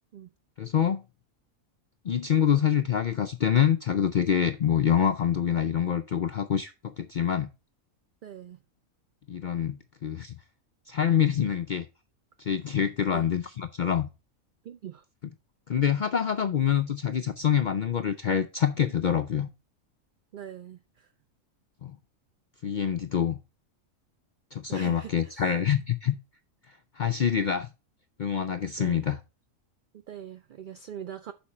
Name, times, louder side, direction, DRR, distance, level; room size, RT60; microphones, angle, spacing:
voice 1, 0.6-1.0 2.0-7.5 9.3-10.4 10.9-11.9 12.4-14.1 15.7-19.5 21.8-22.0 22.6-23.4 24.5-26.2 26.9-27.7 28.2-29.2, left 8 dB, 70° left, 0.4 m, -26 dB
voice 2, 8.2-8.6 13.1-13.3 14.6-15.0 20.3-21.1 24.7-25.4 28.8-29.1 30.1-31.3, right 9 dB, 65° right, 0.5 m, -42 dB
8.5 x 5.8 x 4.3 m
omnidirectional pair, 1.4 m